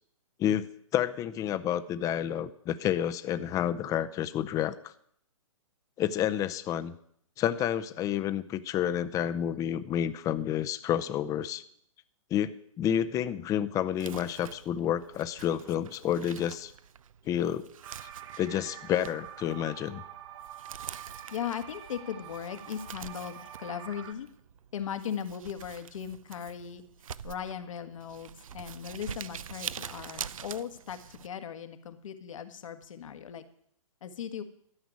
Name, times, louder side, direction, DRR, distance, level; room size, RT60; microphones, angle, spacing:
voice 1, 0.4-4.9 6.0-6.9 7.4-11.6 12.3-16.7 17.3-17.7 18.0-18.1 18.4-20.0, left 10 dB, 20° left, 13 dB, 0.7 m, -30 dB
Crumpling crinkling, 13.9-31.3, right 8 dB, 70° right, 0.6 m, -45 dB
sound 1, 17.8-24.1, right 10 dB, 55° right, 2.3 m, -46 dB
voice 2, 21.3-24.3 24.7-26.8 27.2-33.4 34.0-34.4, left 8 dB, 65° left, 9 dB, 1.6 m, -38 dB
13.0 x 6.1 x 9.6 m, 0.67 s
hypercardioid pair, 135°, 18 cm